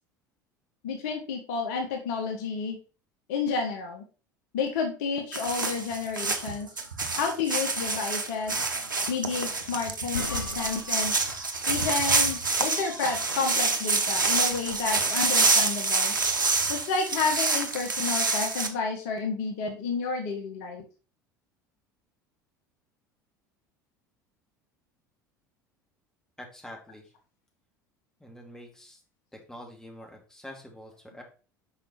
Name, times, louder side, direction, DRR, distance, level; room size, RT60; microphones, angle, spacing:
voice 1, 0.8-2.8 3.3-4.0 4.5-6.7 7.2-8.5 9.1-11.1 11.7-16.1 16.7-20.8, left 4 dB, 60° left, 3 dB, 1.3 m, -30 dB
sound 1, 5.3-18.7, right 3 dB, 85° right, 0.8 m, -27 dB
sound 2, 9.6-9.7 10.0-11.4 11.7-12.7 14.4-15.0, left 5 dB, 90° left, 0.4 m, -40 dB
voice 2, 26.4-27.1 28.2-29.0 29.3-31.2, left 1 dB, 5° left, 0 dB, 2.5 m, -46 dB
5.9 x 5.0 x 4.3 m, 0.35 s
figure-of-eight pair, 70°, 10 cm